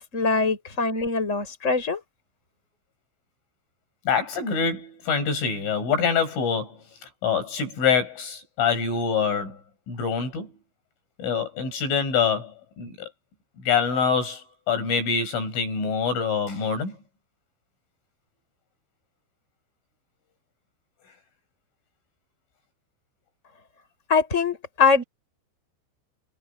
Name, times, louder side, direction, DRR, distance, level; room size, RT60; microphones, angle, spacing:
voice 1, 0.1-2.0 24.1-25.0, left 4 dB, 15° left, 6.3 m, -22 dB
voice 2, 4.1-6.8 7.2-9.6 9.9-10.5 11.2-13.1 13.6-17.0, left 6 dB, 80° left, 10.0 m, -25 dB
omnidirectional pair, 5.6 m